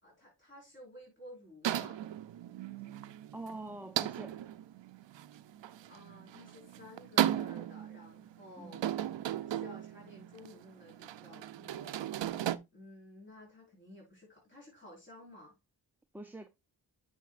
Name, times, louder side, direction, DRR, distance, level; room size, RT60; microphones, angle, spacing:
voice 1, 0.0-2.0 5.9-8.9 9.4-12.0 12.7-15.6, left 1 dB, 25° left, 4.7 m, -53 dB
sound 1, 1.6-12.6, right 11 dB, 85° right, 0.6 m, -36 dB
voice 2, 3.3-4.4 8.6-8.7 16.1-16.5, right 2 dB, 5° right, 0.6 m, -44 dB
9.1 x 6.4 x 2.4 m
wide cardioid pair, 80°, 43 cm